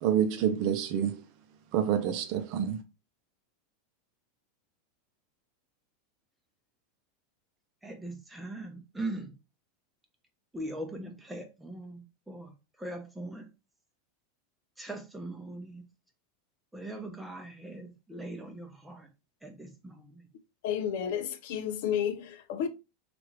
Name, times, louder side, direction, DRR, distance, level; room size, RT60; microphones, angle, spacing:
voice 1, 0.0-1.2 1.7-2.8, right 9 dB, 55° right, 0.5 m, -27 dB
voice 2, 7.8-9.3 10.5-12.5 12.8-13.5 14.8-15.8 16.7-19.1 19.4-20.2, right 1 dB, 5° right, 0.7 m, -40 dB
voice 3, 20.6-22.7, left 9 dB, 70° left, 0.5 m, -31 dB
3.2 x 2.5 x 3.0 m
supercardioid pair, 125°, 0 cm